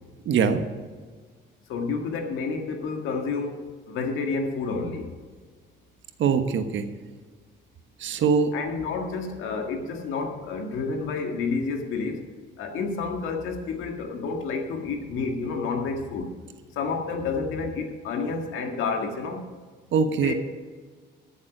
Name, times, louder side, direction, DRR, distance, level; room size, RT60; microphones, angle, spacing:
voice 1, 0.2-0.6 6.2-6.8 8.0-8.5 19.9-20.3, right 6 dB, 70° right, 8 dB, 1.3 m, -22 dB
voice 2, 1.7-5.1 8.5-12.3 12.6-16.3 16.7-19.4 20.2-20.3, left 4 dB, 90° left, 4 dB, 1.8 m, -30 dB
13.5 x 7.3 x 6.1 m, 1.5 s
cardioid pair, 90°, 20 cm